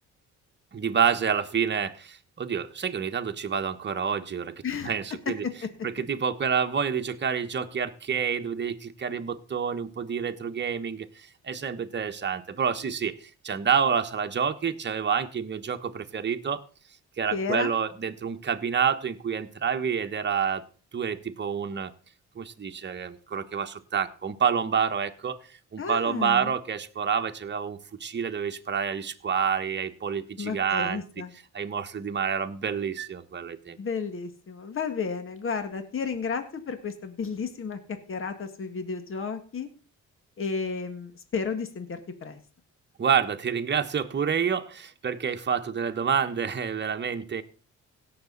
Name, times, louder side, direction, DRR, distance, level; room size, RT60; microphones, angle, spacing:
voice 1, 0.7-5.4 5.8-16.6 17.2-20.6 20.9-21.9 22.3-25.4 25.7-31.0 31.5-33.8 43.0-47.4, right 7 dB, 35° right, 6 dB, 1.3 m, -28 dB
voice 2, 17.3-17.7 25.8-26.5 30.4-31.3 33.8-39.7 40.4-42.4, left 5 dB, 45° left, 8 dB, 1.9 m, -32 dB
17.0 x 6.9 x 4.0 m, 0.37 s
cardioid pair, 90°, 30 cm